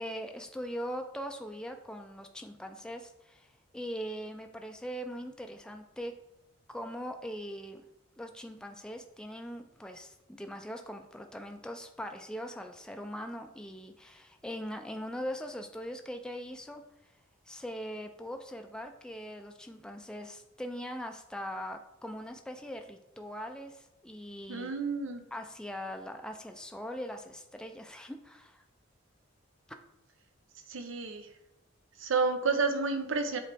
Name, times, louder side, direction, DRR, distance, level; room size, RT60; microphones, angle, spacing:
voice 1, 0.0-6.1 6.7-7.8 8.2-16.8 17.5-24.7 25.3-28.6, equal, 5° left, 5 dB, 0.3 m, -41 dB
voice 2, 24.5-25.2 30.7-31.3 32.0-33.4, right 4 dB, 90° right, 7 dB, 0.7 m, -30 dB
7.3 x 3.9 x 3.4 m, 0.86 s
head